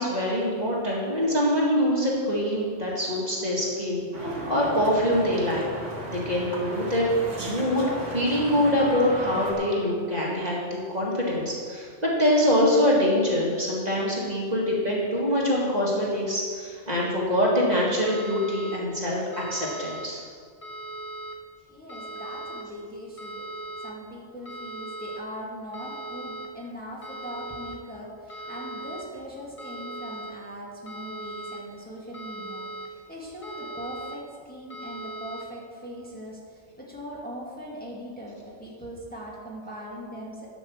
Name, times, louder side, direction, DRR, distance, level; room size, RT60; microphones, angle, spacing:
voice 1, 0.0-5.7 6.1-7.1 7.4-10.6 10.9-20.2, left 1 dB, 35° right, -5 dB, 2.1 m, -24 dB
sound 1, 4.1-9.5, right 1 dB, 90° right, 2.1 m, -35 dB
sound 2, 18.1-18.8 19.3-20.1 20.6-21.3 21.9-22.6 23.2-23.9 24.5-25.2 25.7-26.5 27.0-27.8 28.3-29.0 29.6-30.3 30.9-31.6 32.1-32.9 33.4-34.2 34.7-35.4, right 1 dB, 30° left, 1.5 m, -38 dB
voice 2, 21.7-23.5 23.8-40.5, equal, 5° left, -5 dB, 2.0 m, -40 dB
11.0 x 6.0 x 7.2 m, 2.1 s
omnidirectional pair, 1.2 m